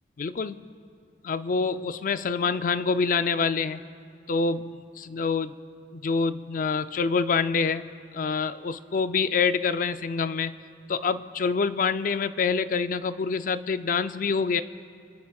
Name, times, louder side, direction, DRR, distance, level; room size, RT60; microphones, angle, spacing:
voice 1, 0.2-0.7 1.2-3.8 4.3-5.6 5.9-10.5 10.9-14.6, left 5 dB, 50° left, 12 dB, 0.4 m, -26 dB
27.5 x 13.0 x 2.3 m, 2.4 s
head